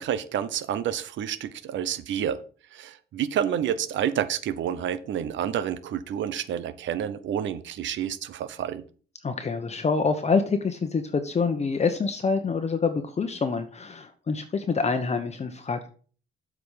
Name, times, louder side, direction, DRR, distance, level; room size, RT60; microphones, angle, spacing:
voice 1, 0.0-2.4 2.7-8.8, right 9 dB, 70° right, 15 dB, 0.8 m, -29 dB
voice 2, 9.2-15.9, left 4 dB, 35° left, 7 dB, 0.9 m, -26 dB
7.9 x 5.0 x 5.7 m, 0.41 s
cardioid pair, 90°, 20 cm